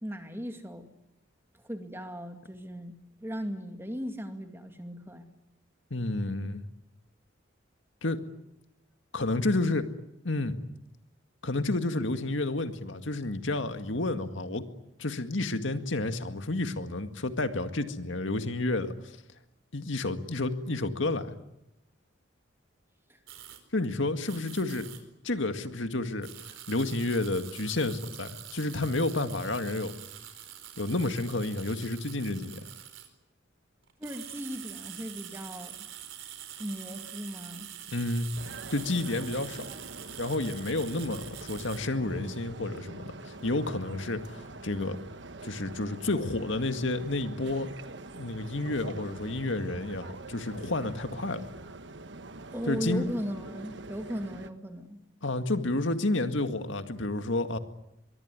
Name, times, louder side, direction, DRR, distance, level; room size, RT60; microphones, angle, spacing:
voice 1, 0.0-0.9 1.6-5.3 23.1-23.2 34.0-35.9 36.6-37.7 52.5-55.0, equal, 10° right, 6 dB, 2.4 m, -37 dB
voice 2, 5.9-6.6 8.0-8.2 9.1-9.9 10.2-10.6 11.4-14.6 15.0-19.2 19.7-21.3 23.7-24.9 25.2-26.3 26.7-29.9 30.8-32.7 37.9-38.3 38.7-39.6 40.2-45.0 45.4-47.7 48.2-51.5 52.7-53.1 55.2-57.6, left 2 dB, 75° left, 8 dB, 2.0 m, -30 dB
sound 1, 23.3-23.6 24.3-25.0 26.2-33.1 33.8-41.8, right 11 dB, 90° right, 4.6 m, -45 dB
sound 2, 38.3-54.5, right 2 dB, 65° right, 1.3 m, -45 dB
24.0 x 23.0 x 9.7 m, 0.84 s
head